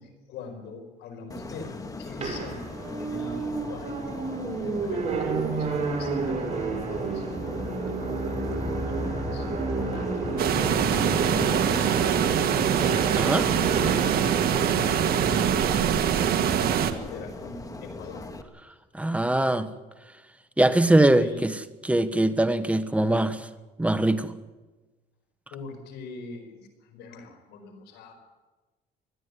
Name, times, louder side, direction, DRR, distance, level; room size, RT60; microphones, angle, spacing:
voice 1, 0.0-2.7 3.0-4.0 4.6-10.4 10.7-13.3 13.5-14.2 15.1-15.9 16.4-18.3 21.2-21.5 25.5-28.2, left 3 dB, 80° left, 5 dB, 4.8 m, -43 dB
sound 1, 1.3-18.4, left 2 dB, 20° left, 1.7 m, -38 dB
sound 2, 2.2-16.9, right 4 dB, 40° right, 5.5 m, -31 dB
sound 3, 10.4-16.9, right 9 dB, 65° right, 1.8 m, -24 dB
voice 2, 13.2-13.5 18.9-19.7 20.6-21.5 21.8-23.4 23.8-24.3, right 1 dB, 10° right, 11 dB, 1.2 m, -22 dB
20.5 x 13.0 x 9.8 m, 1.2 s
cardioid pair, 110°, 17 cm